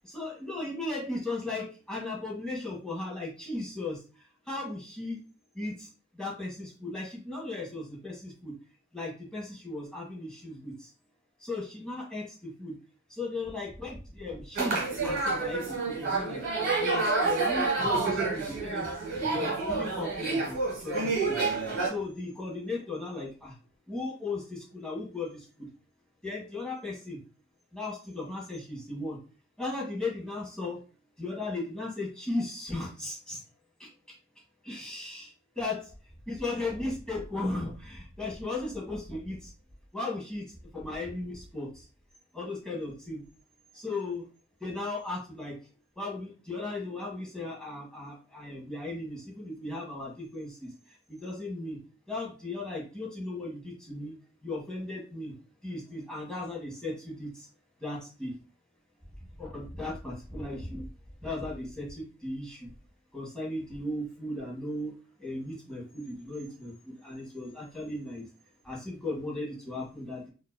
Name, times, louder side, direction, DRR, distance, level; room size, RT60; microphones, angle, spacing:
voice 1, 0.0-4.0 4.5-5.2 5.5-5.9 6.2-8.5 8.9-10.7 11.4-12.7 13.1-16.4 16.8-18.9 19.2-21.6 21.8-23.5 23.9-25.4 26.2-27.2 27.7-29.2 29.6-30.8 31.2-33.4 33.8-33.9 34.6-35.8 36.3-39.5 39.9-40.4 40.7-41.7 42.3-43.2 43.7-44.2 44.6-45.5 46.0-50.7 51.1-51.8 52.1-54.1 54.4-55.3 55.6-57.5 57.8-58.3 59.4-60.9 61.2-62.7 63.1-64.9 65.2-68.2 68.6-70.3, left 2 dB, 5° left, -5 dB, 1.6 m, -36 dB
sound 1, 14.5-21.9, right 3 dB, 50° right, 1.6 m, -29 dB
5.3 x 2.9 x 2.2 m, 0.36 s
head